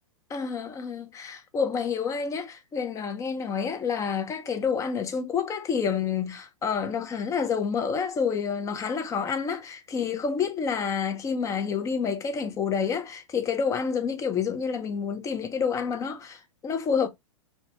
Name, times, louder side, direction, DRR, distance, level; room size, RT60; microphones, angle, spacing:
voice 1, 0.3-17.1, left 6 dB, 20° left, 0.5 m, -28 dB
2.7 x 2.2 x 2.8 m
hypercardioid pair, 105°, 17 cm